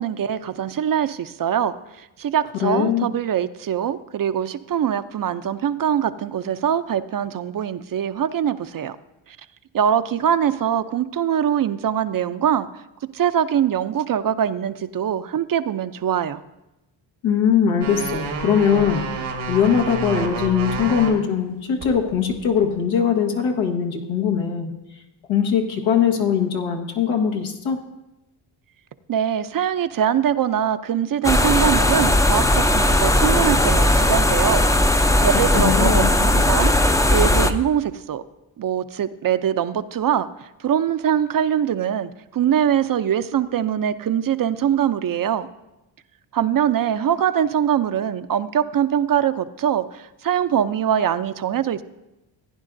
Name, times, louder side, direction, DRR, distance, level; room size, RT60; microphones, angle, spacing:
voice 1, 0.0-9.0 9.3-9.4 9.7-12.7 13.1-16.4 29.1-36.8 37.1-38.2 38.6-45.5 46.3-51.8, right 9 dB, 45° right, 12 dB, 0.5 m, -23 dB
voice 2, 2.6-3.1 17.2-19.1 19.5-24.7 25.3-27.8 35.5-36.1, left 7 dB, 85° left, 2 dB, 1.4 m, -21 dB
sound 1, 17.8-21.1 21.8-22.8, right 4 dB, 85° right, 1.6 m, -29 dB
sound 2, 31.2-37.5, left 1 dB, 5° left, 0.5 m, -17 dB
15.5 x 9.7 x 2.6 m, 0.95 s
cardioid pair, 65°, 47 cm